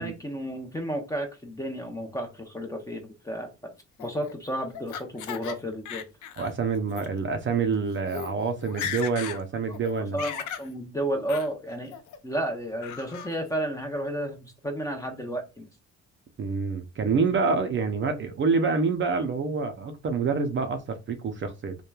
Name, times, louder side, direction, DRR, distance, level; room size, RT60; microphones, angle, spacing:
voice 1, 0.0-3.7 4.0-6.0 10.1-12.0 12.2-15.7, right 1 dB, 10° left, 0.6 m, -32 dB
Laughter, 4.0-5.6 5.9-6.5 6.9-7.1 7.7-7.8 8.1-8.3 8.6-9.4 9.7-10.7 11.3-11.5 11.9-12.4 12.8-13.3, left 8 dB, 80° left, 0.5 m, -36 dB
voice 2, 6.4-10.2 16.4-21.8, right 4 dB, 40° right, 0.5 m, -27 dB
2.9 x 2.2 x 2.2 m
cardioid pair, 90°, 30 cm